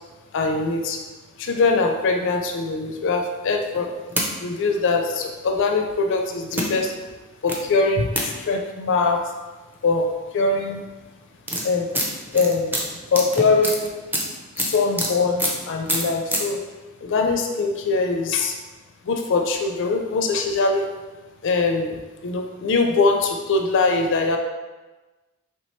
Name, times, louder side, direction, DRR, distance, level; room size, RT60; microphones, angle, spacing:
voice 1, 0.3-1.0 1.4-3.9 4.4-6.9 7.4-9.2 9.8-10.8 11.6-11.9 12.3-12.8 13.1-14.0 14.6-16.6 17.0-18.5 19.0-20.9 21.4-24.4, left 3 dB, 60° left, 3 dB, 0.4 m, -22 dB
sound 1, 3.7-4.3 5.2-5.3 6.5-6.6 7.5-7.6 8.1-8.3 9.7-9.8 10.1-10.4 11.1-15.1 15.4-15.6 15.8-16.4, equal, 10° right, 0.5 m, -25 dB
4.2 x 3.2 x 3.1 m, 1.2 s
head